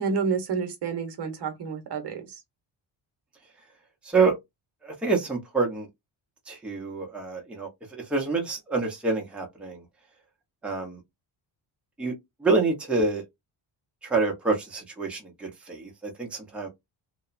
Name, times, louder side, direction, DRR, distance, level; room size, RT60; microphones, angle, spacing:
voice 1, 0.0-2.4, right 5 dB, 55° right, 0.8 m, -29 dB
voice 2, 4.0-4.4 4.8-5.9 6.5-9.8 10.6-11.0 12.0-12.1 12.4-13.2 14.0-16.7, right 4 dB, ahead, 0.6 m, -27 dB
2.8 x 2.1 x 2.4 m
cardioid pair, 135°, 49 cm